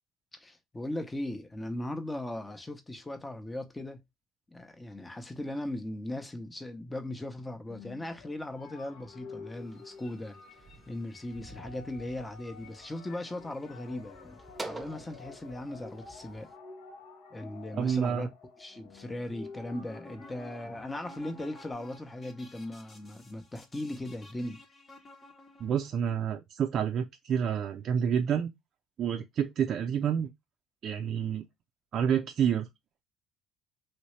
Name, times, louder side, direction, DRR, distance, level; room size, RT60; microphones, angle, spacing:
voice 1, 0.3-4.0 4.5-10.4 10.9-14.4 14.6-16.5 17.3-18.3 18.6-24.6, left 1 dB, 15° left, 0.7 m, -38 dB
sound 1, 7.4-21.7, left 5 dB, 70° left, 0.9 m, -50 dB
sound 2, 9.5-16.6, right 3 dB, 20° right, 0.7 m, -48 dB
voice 2, 17.8-18.3 25.6-28.5 29.0-30.3 30.8-31.4 31.9-32.7, right 8 dB, 55° right, 0.4 m, -28 dB
sound 3, 19.6-25.9, left 2 dB, 40° left, 1.0 m, -53 dB
3.1 x 2.7 x 3.1 m
hypercardioid pair, 65°, 0 cm